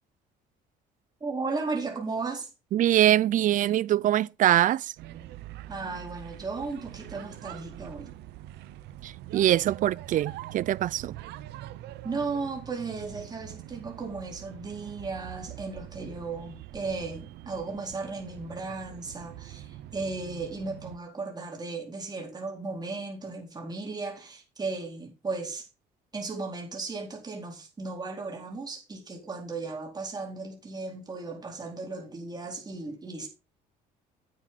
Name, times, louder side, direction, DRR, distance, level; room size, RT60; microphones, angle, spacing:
voice 1, 1.2-2.5 5.7-8.1 12.0-25.7 26.1-33.3, right 3 dB, 25° right, 4.1 m, -35 dB
voice 2, 2.7-4.9 9.0-11.1, right 12 dB, 50° right, 0.4 m, -23 dB
sound 1, 5.0-21.0, right 14 dB, 80° right, 0.8 m, -44 dB
9.0 x 9.0 x 4.1 m
cardioid pair, 110°, 17 cm